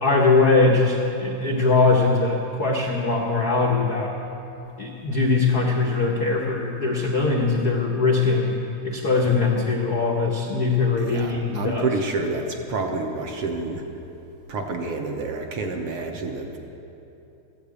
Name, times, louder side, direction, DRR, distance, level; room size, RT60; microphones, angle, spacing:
voice 1, 0.0-4.1 4.8-8.6 8.8-11.9, left 3 dB, 80° left, -1 dB, 0.8 m, -21 dB
voice 2, 11.0-13.8 14.5-16.6, right 3 dB, 65° right, 3 dB, 1.5 m, -28 dB
14.0 x 10.0 x 8.3 m, 2.9 s
omnidirectional pair, 3.4 m